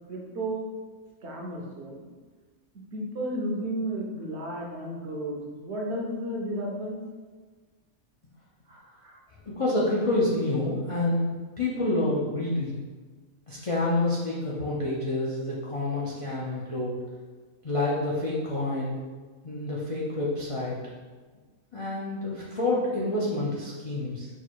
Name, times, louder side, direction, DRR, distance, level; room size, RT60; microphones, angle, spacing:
voice 1, 0.1-0.7 1.2-2.1 2.9-7.0 8.7-9.2, right 1 dB, 60° right, -2 dB, 0.9 m, -33 dB
voice 2, 9.4-11.3 11.6-12.8 13.5-17.0 17.6-19.0 19.4-20.8 21.7-24.3, left 2 dB, 45° left, -7 dB, 0.4 m, -28 dB
4.6 x 2.1 x 4.4 m, 1.4 s
omnidirectional pair, 1.4 m